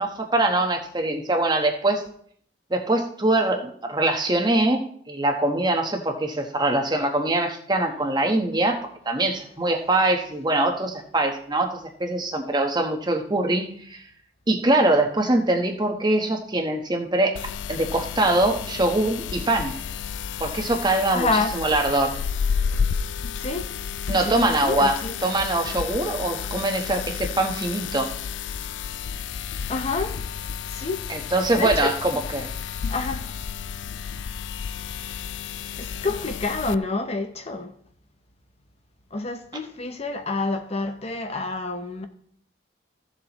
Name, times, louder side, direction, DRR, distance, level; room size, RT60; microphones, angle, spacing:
voice 1, 0.0-2.0 2.7-14.0 14.5-17.4 17.7-19.7 20.4-22.2 24.1-28.1 31.1-32.5, right 2 dB, 25° right, 1.1 m, -23 dB
sound 1, 17.3-36.7, left 6 dB, 90° left, 0.4 m, -31 dB
voice 2, 21.1-21.6 23.4-23.7 24.2-25.1 29.7-30.2 30.7-31.1 31.6-31.9 32.9-33.2 35.8-37.7 39.1-42.1, left 3 dB, 35° left, 0.7 m, -28 dB
15.0 x 7.2 x 3.0 m
head